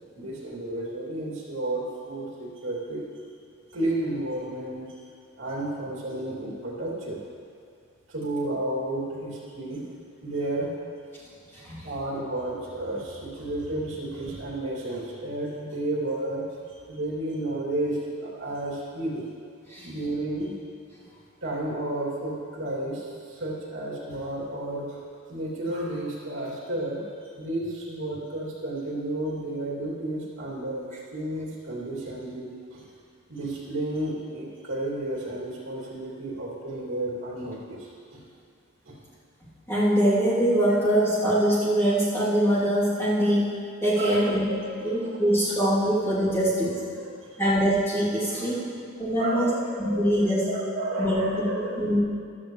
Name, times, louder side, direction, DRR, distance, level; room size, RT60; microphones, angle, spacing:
voice 1, 0.2-3.0 3.7-4.9 5.4-7.2 8.1-9.8 10.2-10.7 11.8-16.4 16.9-19.3 19.8-20.5 21.4-25.0 25.3-32.8 33.3-38.2 38.8-39.0 43.9-45.1 47.0-47.4 48.3-48.6 49.2-52.0, right 1 dB, 65° right, -5 dB, 3.0 m, -32 dB
voice 2, 11.5-11.8 19.7-19.9 39.7-44.5 44.8-46.8 47.4-48.7 49.0-49.5 49.8-50.5 51.0-52.0, equal, 10° left, -11 dB, 3.3 m, -23 dB
15.0 x 12.5 x 3.4 m, 2.3 s
head